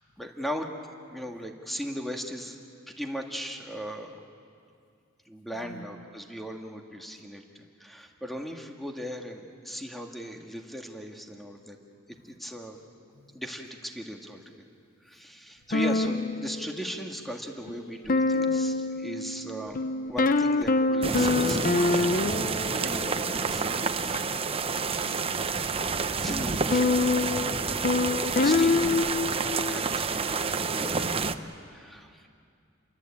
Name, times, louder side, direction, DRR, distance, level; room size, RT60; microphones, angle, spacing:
voice 1, 0.2-0.7 1.1-2.6 2.9-4.2 5.3-11.8 12.2-12.8 13.3-14.7 15.0-22.2 22.8-24.2 25.6-27.9 28.3-29.4 29.7-32.3, equal, ahead, 2 dB, 1.9 m, -38 dB
voice 2, 5.5-5.9 12.1-12.3 13.1-13.4 15.7-16.1 24.9-26.3 30.4-30.9, left 1 dB, 65° left, 5 dB, 1.8 m, -48 dB
sound 1, 15.7-17.0 17.7-17.8 18.1-23.6 24.1-24.2 26.3-29.8, left 3 dB, 45° left, 0.7 m, -26 dB
sound 2, 21.0-31.3, right 4 dB, 30° right, 0.8 m, -29 dB
29.5 x 22.5 x 8.7 m, 2.4 s
head